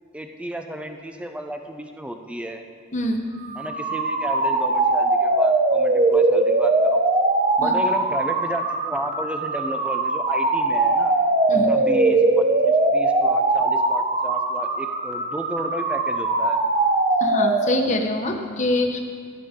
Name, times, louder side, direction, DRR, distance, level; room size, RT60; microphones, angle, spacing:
voice 1, 0.1-2.6 3.5-7.0 7.6-11.1 11.5-16.6, equal, 5° right, 5 dB, 0.5 m, -33 dB
voice 2, 2.9-3.2 7.6-7.7 11.5-11.7 17.2-19.0, left 1 dB, 35° left, 2 dB, 1.1 m, -24 dB
sound 1, 3.4-18.1, right 2 dB, 35° right, 0.8 m, -21 dB
16.5 x 10.0 x 3.7 m, 2.1 s
head